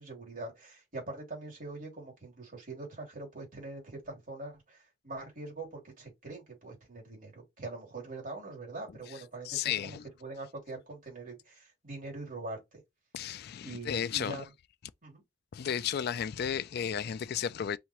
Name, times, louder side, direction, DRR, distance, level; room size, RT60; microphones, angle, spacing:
voice 1, 0.0-12.8 13.6-14.5 15.0-15.2, right 2 dB, 45° right, 2.9 m, -43 dB
voice 2, 9.4-10.1 13.1-14.4 15.5-17.8, left 8 dB, 55° left, 0.4 m, -33 dB
5.7 x 2.9 x 3.0 m
head